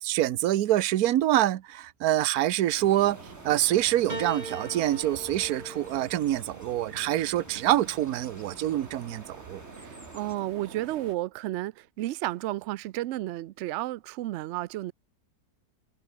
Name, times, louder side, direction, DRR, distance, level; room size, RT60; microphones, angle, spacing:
voice 1, 0.0-3.2 3.4-9.6, right 13 dB, 70° right, 1.2 m, -26 dB
sound 1, 2.4-11.2, right 5 dB, 40° right, 1.8 m, -48 dB
sound 2, 2.8-10.4, equal, 10° left, 6.7 m, -52 dB
Piano, 4.1-8.6 9.6-10.4, right 1 dB, 25° right, 4.3 m, -42 dB
voice 2, 9.8-14.9, right 15 dB, 90° right, 0.6 m, -32 dB
omnidirectional pair, 1.8 m